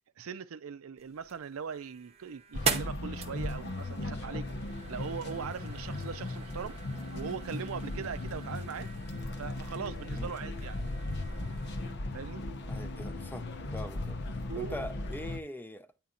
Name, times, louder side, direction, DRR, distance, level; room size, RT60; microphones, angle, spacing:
voice 1, 0.2-4.5 4.9-6.8 7.1-8.9 9.4-10.8 12.1-12.5 14.5-14.9, right 6 dB, 85° right, 0.5 m, -40 dB
sound 1, 1.0-11.9, right 5 dB, 30° right, 0.9 m, -41 dB
sound 2, 2.5-15.4, left 2 dB, 55° left, 0.8 m, -37 dB
voice 2, 12.7-14.2 14.6-15.9, left 1 dB, 10° left, 0.6 m, -42 dB
9.2 x 4.3 x 3.8 m
head